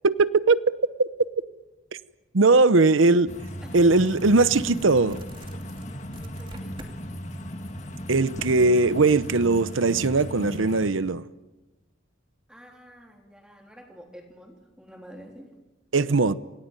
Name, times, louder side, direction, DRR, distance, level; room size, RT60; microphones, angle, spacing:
voice 1, 0.0-0.6 1.0-1.1 2.3-3.3 3.7-5.2 8.1-11.2 15.9-16.3, right 3 dB, 85° right, 0.8 m, -19 dB
sound 1, 2.7-2.8 3.2-7.0 7.3-9.4, right 1 dB, 25° right, 2.6 m, -47 dB
sound 2, 3.3-10.9, equal, 35° left, 2.0 m, -37 dB
voice 2, 6.1-6.8 12.5-15.5, equal, 5° right, 3.5 m, -48 dB
28.0 x 18.5 x 9.1 m
head